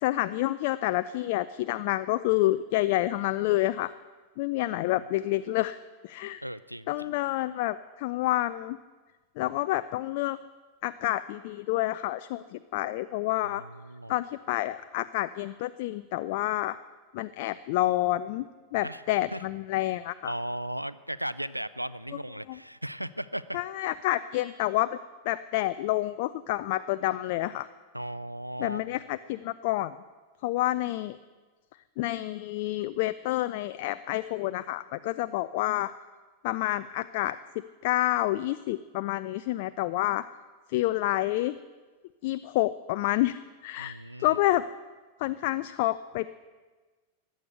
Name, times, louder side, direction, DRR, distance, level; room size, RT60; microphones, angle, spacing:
voice 1, 0.0-3.9 4.4-5.8 6.0-6.4 6.9-8.8 9.4-10.4 10.8-13.6 14.1-16.8 17.1-18.5 18.7-20.3 22.5-22.6 23.5-24.9 25.3-27.7 28.6-29.9 30.4-31.2 32.0-35.9 36.4-37.4 37.8-40.2 40.7-41.6 42.2-44.6 45.2-46.3, left 16 dB, 50° left, 12 dB, 0.4 m, -28 dB
voice 2, 6.4-7.2 13.4-14.2 18.8-19.0 19.3-19.4 20.2-23.6 27.9-28.8 43.8-44.4, right 1 dB, 90° right, 16 dB, 0.4 m, -36 dB
15.0 x 10.0 x 8.0 m, 1.3 s
figure-of-eight pair, 90°, 0 cm